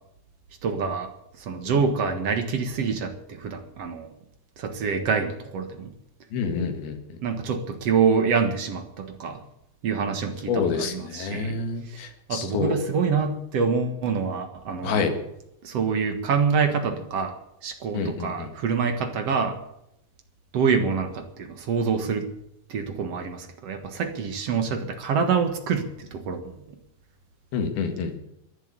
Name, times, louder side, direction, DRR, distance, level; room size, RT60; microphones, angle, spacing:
voice 1, 0.6-1.1 1.4-4.1 4.6-5.9 7.2-9.4 9.8-15.2 15.6-17.4 17.6-19.6 20.5-22.3 22.7-26.6, right 5 dB, 55° right, 6 dB, 1.9 m, -26 dB
voice 2, 6.3-7.0 10.5-12.7 14.8-15.1 17.9-18.5 27.5-28.1, left 5 dB, 70° left, 6 dB, 3.8 m, -27 dB
14.5 x 11.5 x 8.3 m, 0.81 s
omnidirectional pair, 4.6 m